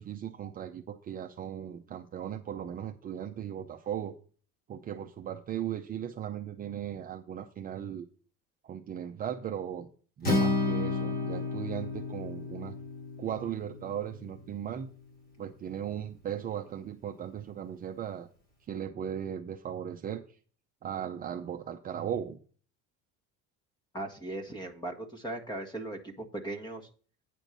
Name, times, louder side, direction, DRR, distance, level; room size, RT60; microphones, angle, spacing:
voice 1, 0.0-4.1 4.7-8.1 8.6-9.9 10.2-12.7 13.2-14.9 15.4-18.3 18.7-20.2 20.8-22.4, right 9 dB, 30° right, 4 dB, 0.6 m, -37 dB
Acoustic guitar, 10.2-14.5, left 3 dB, 30° left, 2.5 m, -32 dB
voice 2, 23.9-26.9, right 2 dB, 15° left, 7 dB, 1.5 m, -38 dB
9.1 x 4.5 x 6.6 m, 0.40 s
cardioid pair, 155°, 30 cm